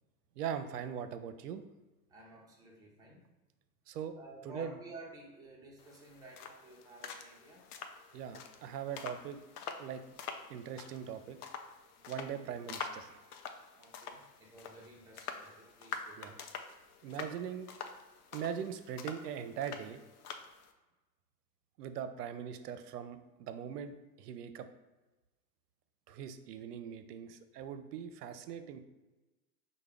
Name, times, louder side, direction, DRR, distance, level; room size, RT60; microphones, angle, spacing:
voice 1, 0.4-1.6 3.9-4.2 4.5-4.7 8.1-9.4 9.8-10.0 10.5-11.4 12.1-13.3 16.2-16.3 17.0-17.7 18.3-20.0 21.8-24.7 26.1-28.8, right 8 dB, 75° right, 10 dB, 0.6 m, -41 dB
voice 2, 2.1-3.3 4.1-7.7 12.0-12.3 13.7-16.4, right 2 dB, 10° right, -3 dB, 0.5 m, -53 dB
sound 1, 5.8-20.7, left 6 dB, 70° left, 0.6 m, -47 dB
4.6 x 2.2 x 3.3 m, 1.1 s
hypercardioid pair, 115°, 49 cm